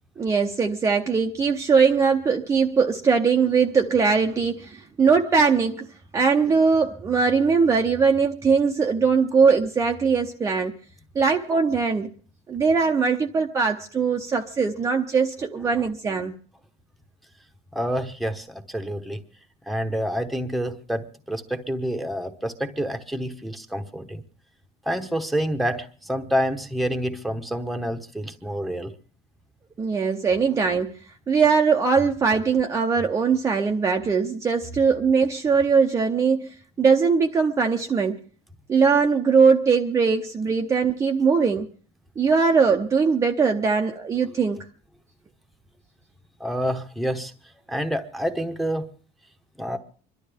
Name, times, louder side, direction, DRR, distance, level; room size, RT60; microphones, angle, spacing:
voice 1, 0.2-5.9 6.1-10.7 11.1-12.1 12.5-16.3 29.8-31.0 31.3-38.2 38.7-41.7 42.2-44.6, right 5 dB, 20° right, 0.7 m, -21 dB
voice 2, 17.7-19.2 19.7-24.2 24.8-28.9 46.4-47.3 47.7-48.8 49.6-49.8, equal, ahead, 1.1 m, -28 dB
26.0 x 12.0 x 3.5 m
cardioid pair, 165°, 15 cm